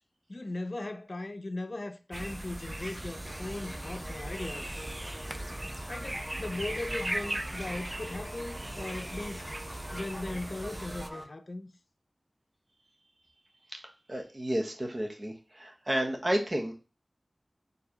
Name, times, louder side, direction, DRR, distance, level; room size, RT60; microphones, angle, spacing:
voice 1, 0.3-4.7 5.9-9.5 9.9-11.7, left 2 dB, 60° left, 0.5 m, -38 dB
sound 1, 2.1-11.1, right 1 dB, 30° right, 0.4 m, -38 dB
sound 2, 3.2-11.2, equal, 5° left, 0.9 m, -46 dB
voice 2, 14.1-16.7, right 1 dB, 45° right, 1.1 m, -31 dB
4.7 x 3.3 x 2.9 m
wide cardioid pair, 45°, 0 cm